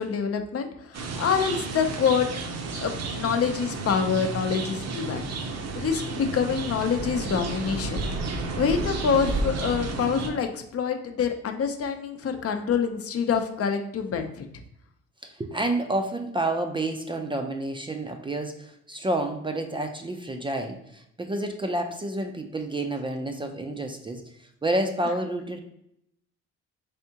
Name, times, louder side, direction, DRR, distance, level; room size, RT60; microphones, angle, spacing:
voice 1, 0.0-2.3 2.8-5.2 5.7-8.0 8.6-14.4, left 6 dB, 50° left, 6 dB, 0.6 m, -26 dB
sound 1, 0.9-10.3, right 3 dB, 60° right, 0.7 m, -32 dB
voice 2, 15.2-24.2 24.6-25.6, right 1 dB, 15° right, 4 dB, 0.4 m, -29 dB
3.5 x 3.5 x 2.8 m, 0.77 s
cardioid pair, 90°, 30 cm